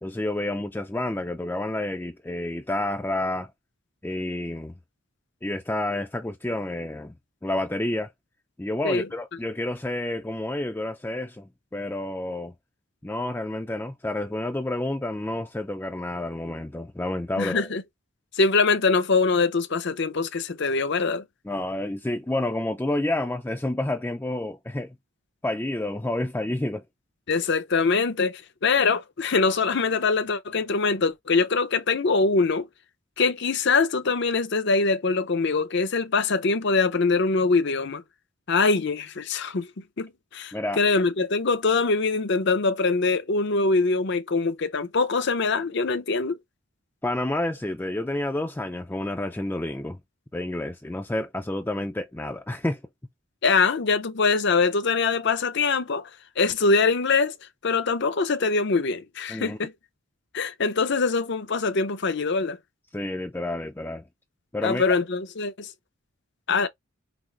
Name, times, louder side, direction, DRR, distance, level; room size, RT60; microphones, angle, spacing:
voice 1, 0.0-3.5 4.0-4.7 5.4-7.1 7.4-8.1 8.6-12.5 13.0-17.7 21.5-25.0 25.4-26.8 40.5-40.8 47.0-50.0 50.3-52.8 59.3-59.6 62.9-64.0 64.5-64.8, left 1 dB, 10° left, 0.4 m, -29 dB
voice 2, 17.4-17.8 18.4-21.2 27.3-32.7 33.2-38.0 38.5-39.7 40.0-46.4 53.4-56.1 56.4-57.4 57.6-59.7 60.3-62.6 64.6-65.7 66.5-66.7, left 4 dB, 55° left, 0.7 m, -23 dB
6.0 x 2.0 x 3.2 m
head